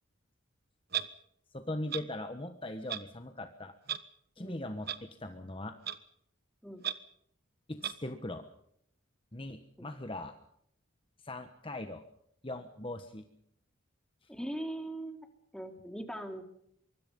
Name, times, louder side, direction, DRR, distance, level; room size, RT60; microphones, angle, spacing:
Clock, 0.9-1.1 1.9-2.0 2.9-3.0 3.9-4.0 4.9-5.0 5.9-6.0 6.8-6.9 7.8-7.9, right 9 dB, 50° right, 1.3 m, -33 dB
voice 1, 1.5-3.7 4.4-5.8 7.7-8.4 9.3-10.3 11.2-12.1 12.4-13.3 14.2-14.3, left 1 dB, 25° left, 7 dB, 1.4 m, -40 dB
voice 2, 14.3-15.3 15.5-16.4, right 1 dB, 5° left, 4 dB, 3.1 m, -40 dB
24.5 x 24.0 x 5.4 m, 0.71 s
head